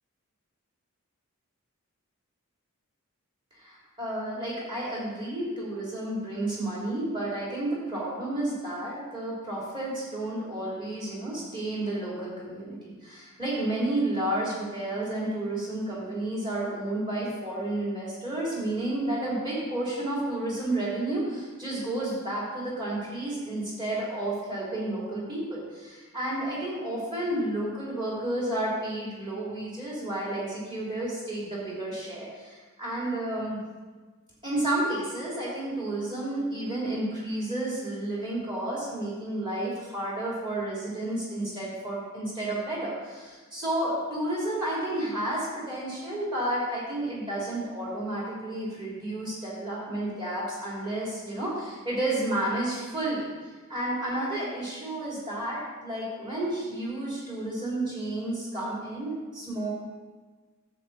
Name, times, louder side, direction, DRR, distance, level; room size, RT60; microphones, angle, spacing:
voice 1, 3.6-33.6 34.4-53.3 53.7-59.7, right 1 dB, 20° right, -6 dB, 3.3 m, -31 dB
9.9 x 7.8 x 4.2 m, 1.3 s
head